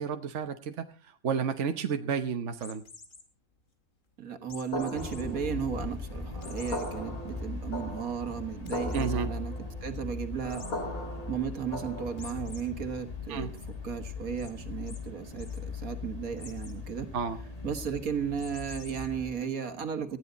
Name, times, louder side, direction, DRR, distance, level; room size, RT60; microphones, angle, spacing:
voice 1, 0.0-2.8 8.9-9.3 13.3-13.5 17.1-17.4, right 6 dB, 60° right, 7 dB, 1.3 m, -31 dB
sound 1, 2.6-3.2 4.5-5.2 5.7-5.8 6.4-6.9 7.4-7.5 7.8-7.9 8.7-9.1 10.5-10.7 12.2-12.6 13.1-13.7 14.4-14.5 14.9-15.0 15.3-15.6 16.4-16.8 18.4-19.1, left 4 dB, 65° left, 2.4 m, -48 dB
voice 2, 4.2-11.0 11.3-13.5 13.8-17.1 17.6-20.2, right 7 dB, 80° right, 7 dB, 2.2 m, -35 dB
sound 2, 4.7-12.5, left 1 dB, 80° left, 3.9 m, -39 dB
sound 3, 4.9-19.3, left 3 dB, 25° left, 2.4 m, -39 dB
19.0 x 14.5 x 4.0 m, 0.35 s
omnidirectional pair, 1.4 m